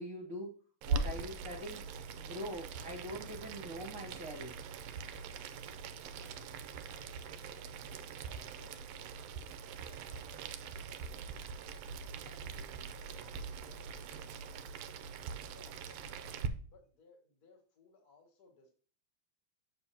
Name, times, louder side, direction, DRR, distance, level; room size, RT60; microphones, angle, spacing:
voice 1, 0.0-1.8 2.2-4.6, equal, 55° right, -2 dB, 1.9 m, -43 dB
Boiling, 0.8-16.5, right 5 dB, 75° right, 1.6 m, -42 dB
voice 2, 6.0-6.6 6.9-9.2 9.9-11.3 12.2-14.8 15.2-18.7, left 3 dB, 35° left, 2 dB, 2.0 m, -64 dB
7.7 x 6.7 x 2.8 m, 0.42 s
omnidirectional pair, 3.3 m